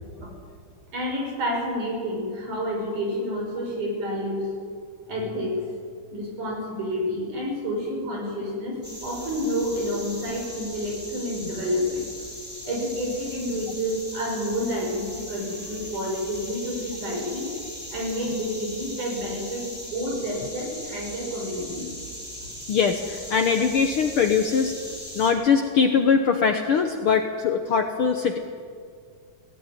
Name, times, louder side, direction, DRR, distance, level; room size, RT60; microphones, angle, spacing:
voice 1, 0.9-4.5 5.1-5.5 6.1-12.0 12.6-17.5 17.9-21.9, equal, 75° right, -1 dB, 7.2 m, -29 dB
sound 1, 8.8-25.3, equal, 5° right, 3.7 m, -39 dB
voice 2, 22.7-24.7 25.1-28.4, left 6 dB, 65° left, 6 dB, 1.4 m, -22 dB
18.0 x 16.5 x 9.9 m, 2.2 s
omnidirectional pair, 3.6 m